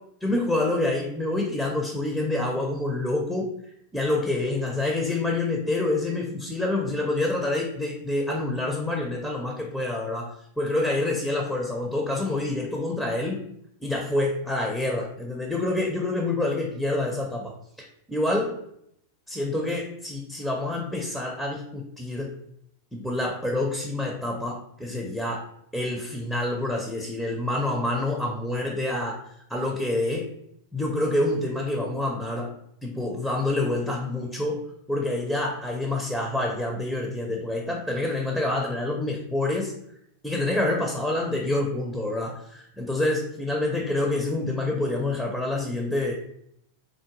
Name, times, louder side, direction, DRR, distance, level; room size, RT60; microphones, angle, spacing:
voice 1, 0.2-3.5 3.9-13.5 13.8-18.6 19.3-22.4 22.9-25.4 25.7-29.2 29.5-30.3 30.7-32.5 32.8-34.6 34.9-39.7 40.2-46.1, left 2 dB, ahead, 0 dB, 0.4 m, -27 dB
3.6 x 2.1 x 2.9 m, 0.74 s
figure-of-eight pair, 90°, 0 cm